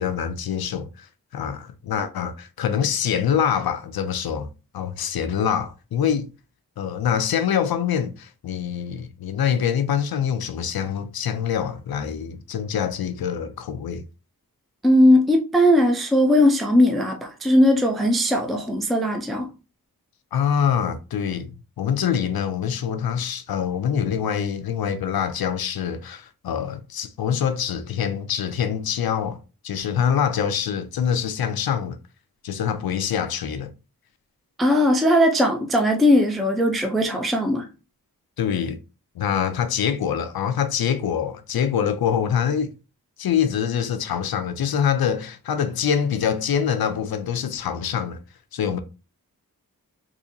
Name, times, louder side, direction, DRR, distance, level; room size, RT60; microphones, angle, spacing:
voice 1, 0.0-4.5 4.7-6.3 6.8-14.1 20.3-29.4 29.6-32.0 32.4-33.7 38.4-38.8 39.2-42.7 43.2-48.2 48.5-48.8, left 8 dB, 80° left, 0.5 m, -25 dB
voice 2, 14.8-19.5 34.6-37.7, left 1 dB, ahead, 0.5 m, -18 dB
3.8 x 2.7 x 2.7 m
wide cardioid pair, 85°, 36 cm